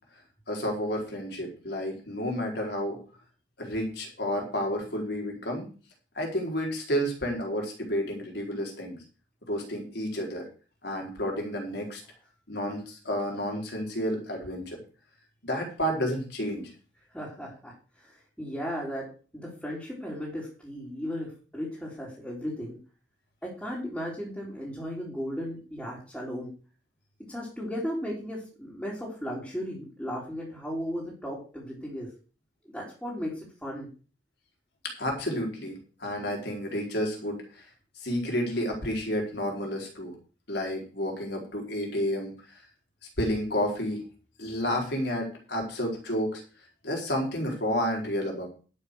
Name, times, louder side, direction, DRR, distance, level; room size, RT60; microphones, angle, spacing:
voice 1, 0.5-3.0 3.6-5.7 6.1-9.0 9.5-10.4 10.8-12.0 12.5-14.8 15.4-16.7 35.0-37.7 38.0-40.2 40.5-42.6 43.2-44.0 44.4-46.4 46.8-48.5, equal, 65° left, 1 dB, 4.7 m, -31 dB
voice 2, 17.1-22.8 23.4-26.5 27.3-32.1 32.7-33.9, equal, 5° left, -8 dB, 4.1 m, -36 dB
11.5 x 7.1 x 6.6 m, 0.37 s
head